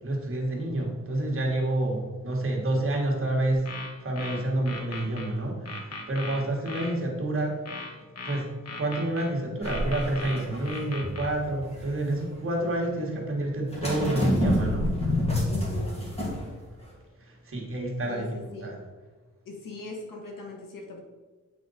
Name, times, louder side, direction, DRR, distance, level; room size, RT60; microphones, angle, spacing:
voice 1, 0.0-3.7 4.0-7.6 8.2-14.9 17.2-18.3 18.6-18.8, right 1 dB, 40° right, -1 dB, 1.5 m, -28 dB
sound 1, 3.5-5.3 5.7-6.9 7.7-9.3 9.7-11.3, left 3 dB, 50° left, 1.1 m, -38 dB
sound 2, 9.6-12.1 13.7-16.5 16.8-16.9, left 1 dB, 20° left, 1.9 m, -28 dB
voice 2, 15.5-15.9 18.1-18.7 19.4-21.0, left 3 dB, 85° left, 1 dB, 1.5 m, -40 dB
7.7 x 4.0 x 4.1 m, 1.3 s
wide cardioid pair, 130°, 32 cm